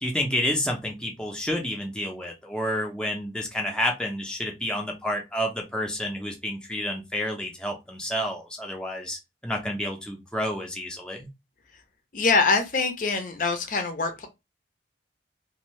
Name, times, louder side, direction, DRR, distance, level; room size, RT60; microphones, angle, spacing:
voice 1, 0.0-9.2 9.4-11.3, left 1 dB, 5° left, 0.6 m, -29 dB
voice 2, 12.1-14.3, left 4 dB, 45° left, 0.6 m, -24 dB
2.6 x 2.6 x 3.0 m
head